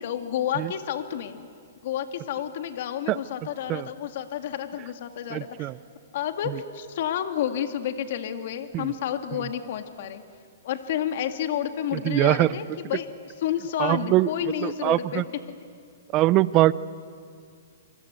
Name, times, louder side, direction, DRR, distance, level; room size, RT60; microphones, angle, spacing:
voice 1, 0.0-1.5 1.8-5.7 6.1-10.2 10.6-13.1 13.4-15.2, left 10 dB, 55° left, 7 dB, 1.9 m, -30 dB
voice 2, 5.3-5.8 6.5-6.6 8.7-8.9 11.9-12.5 13.8-14.3 14.6-15.2 16.1-16.7, right 16 dB, 30° right, 18 dB, 0.6 m, -22 dB
27.5 x 24.0 x 8.2 m, 2.1 s
hypercardioid pair, 150°, 0 cm